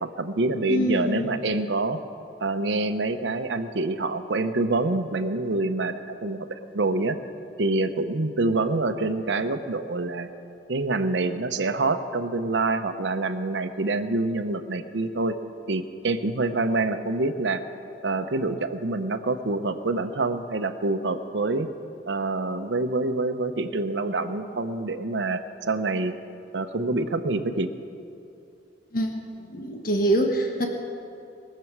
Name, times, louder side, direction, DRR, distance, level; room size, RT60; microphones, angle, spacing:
voice 1, 0.0-2.0 2.4-7.2 7.6-10.3 10.7-15.4 15.7-17.6 18.0-21.7 22.1-26.1 26.5-27.7, right 2 dB, 70° right, 8 dB, 0.8 m, -26 dB
voice 2, 0.7-1.4 28.9-29.1 29.5-30.7, right 1 dB, 50° left, 2 dB, 1.3 m, -24 dB
22.5 x 7.6 x 6.0 m, 2.7 s
head